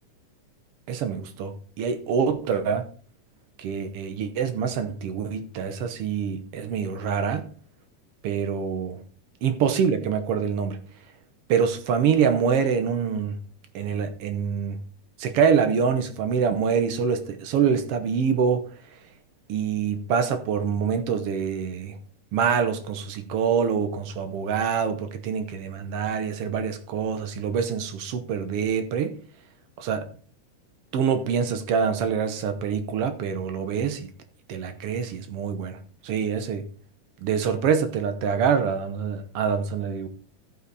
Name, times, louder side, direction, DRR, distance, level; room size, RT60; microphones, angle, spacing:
voice 1, 0.9-2.8 3.6-7.4 8.2-9.0 9.4-10.8 11.5-13.4 13.7-14.8 15.2-18.6 19.5-22.0 22.3-29.1 29.8-30.1 30.9-34.1 34.5-35.8 36.0-36.6 37.2-40.1, right 6 dB, 80° right, 1.3 m, -25 dB
14.5 x 5.7 x 4.1 m
omnidirectional pair, 3.9 m